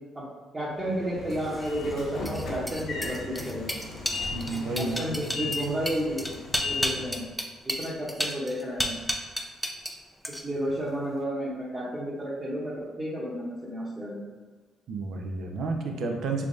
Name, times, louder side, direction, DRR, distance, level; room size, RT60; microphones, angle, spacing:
voice 1, 0.5-3.8 4.7-6.3 6.6-7.3 7.6-9.0 10.3-14.2, equal, 20° right, -8 dB, 0.9 m, -32 dB
Train / Sliding door, 0.8-7.3, left 3 dB, 75° left, 0.8 m, -36 dB
sound 1, 1.4-10.0 10.2-10.7, equal, ahead, 0.4 m, -33 dB
voice 2, 4.3-5.1 5.4-5.5 14.9-16.5, right 3 dB, 70° right, 3 dB, 0.5 m, -31 dB
3.4 x 3.4 x 2.6 m, 1.4 s
cardioid pair, 90°, 0 cm